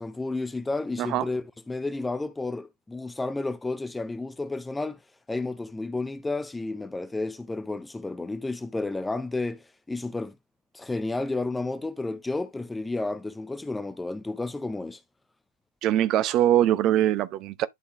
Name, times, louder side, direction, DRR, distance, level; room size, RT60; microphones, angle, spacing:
voice 1, 0.0-5.0 5.3-10.4 10.7-15.0, left 2 dB, 10° left, 0.6 m, -31 dB
voice 2, 15.8-17.7, right 12 dB, 35° right, 0.7 m, -22 dB
11.0 x 4.0 x 3.1 m
figure-of-eight pair, 90°, 0 cm